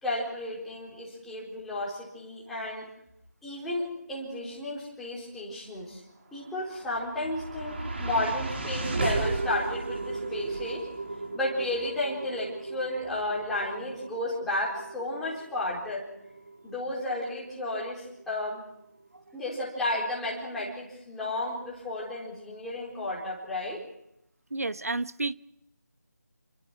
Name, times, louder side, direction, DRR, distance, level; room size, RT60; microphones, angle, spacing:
voice 1, 0.0-2.9 3.4-6.0 6.3-10.9 11.3-16.1 16.6-18.6 19.3-23.8, left 1 dB, ahead, -6 dB, 4.0 m, -33 dB
sound 1, 6.4-18.8, right 2 dB, 40° right, 3.5 m, -35 dB
voice 2, 24.5-25.3, right 3 dB, 60° right, 13 dB, 1.1 m, -30 dB
29.0 x 24.0 x 4.7 m, 0.80 s
figure-of-eight pair, 165°, 9 cm